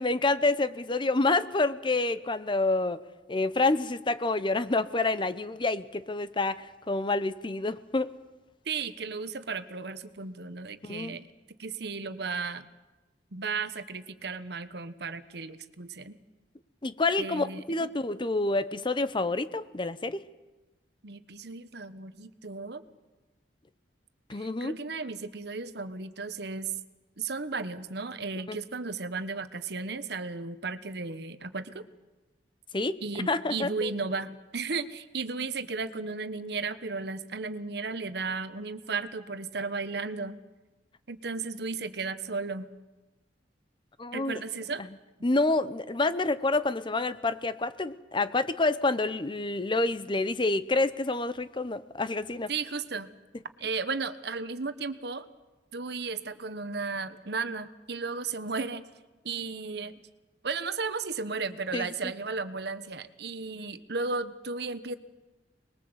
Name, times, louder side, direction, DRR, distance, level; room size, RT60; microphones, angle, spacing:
voice 1, 0.0-3.0 3.3-8.1 10.8-11.2 16.8-20.2 24.3-24.7 28.5-28.6 32.7-33.0 33.3-33.9 44.0-44.3 45.2-52.5 61.7-61.9, left 2 dB, 25° left, 14 dB, 0.7 m, -28 dB
voice 2, 8.6-11.3 11.6-12.7 13.3-16.2 17.2-17.9 21.0-22.8 24.3-26.7 27.2-31.8 33.0-40.4 41.1-42.7 44.1-44.8 52.5-53.1 53.6-55.3 55.7-58.8 59.2-60.0 60.4-65.0, right 4 dB, 60° right, 12 dB, 1.1 m, -34 dB
25.0 x 21.0 x 7.9 m, 1.1 s
head